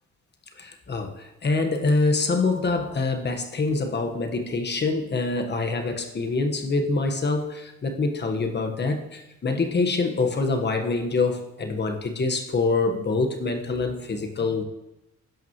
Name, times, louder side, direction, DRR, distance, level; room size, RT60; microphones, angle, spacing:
voice 1, 0.6-14.6, left 3 dB, 35° left, 5 dB, 1.4 m, -25 dB
16.5 x 5.8 x 3.1 m, 0.92 s
cardioid pair, 90°, 30 cm